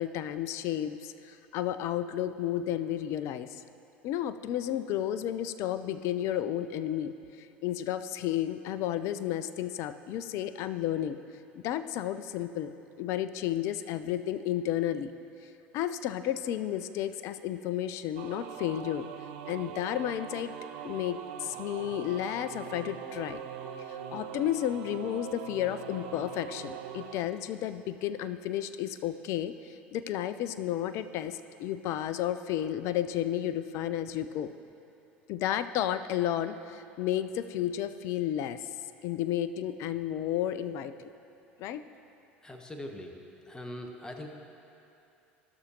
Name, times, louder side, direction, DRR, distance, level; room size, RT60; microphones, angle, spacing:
voice 1, 0.0-3.6 4.0-11.2 11.6-15.1 15.4-19.1 19.5-20.5 20.8-23.4 23.9-34.5 35.3-38.6 39.0-41.1 41.6-41.8, left 11 dB, 50° left, 12 dB, 0.4 m, -32 dB
sound 1, 18.2-27.2, right 8 dB, 60° right, 0.5 m, -42 dB
voice 2, 42.4-43.1 43.5-44.3, left 1 dB, 10° left, 3 dB, 1.0 m, -41 dB
15.0 x 6.2 x 2.9 m, 2.7 s
figure-of-eight pair, 70°, 6 cm